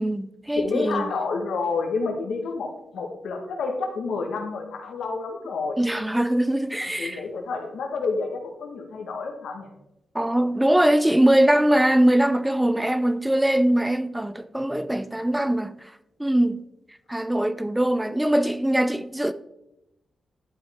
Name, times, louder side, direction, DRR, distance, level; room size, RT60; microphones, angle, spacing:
voice 1, 0.0-1.0 5.8-7.2 10.1-15.7 16.2-16.6 17.1-19.3, right 1 dB, 5° right, 0.3 m, -22 dB
voice 2, 0.5-5.8 6.8-9.7, left 4 dB, 85° left, 1.4 m, -29 dB
11.5 x 5.3 x 3.6 m
wide cardioid pair, 120°, 0 cm